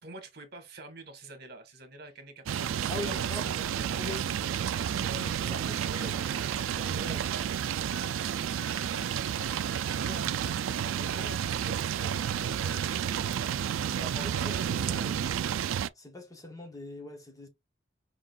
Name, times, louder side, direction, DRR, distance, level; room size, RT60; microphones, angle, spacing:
voice 1, 0.0-6.1 6.7-7.2 7.7-13.0 14.2-15.4, right 3 dB, 55° right, 1.5 m, -47 dB
sound 1, 2.5-15.9, right 9 dB, 90° right, 0.3 m, -31 dB
voice 2, 2.9-4.2 4.9-6.2 7.0-7.2 13.8-15.2 15.9-17.5, left 2 dB, 20° left, 1.0 m, -42 dB
sound 2, 5.7-14.9, equal, ahead, 2.1 m, -49 dB
5.1 x 3.7 x 2.4 m
head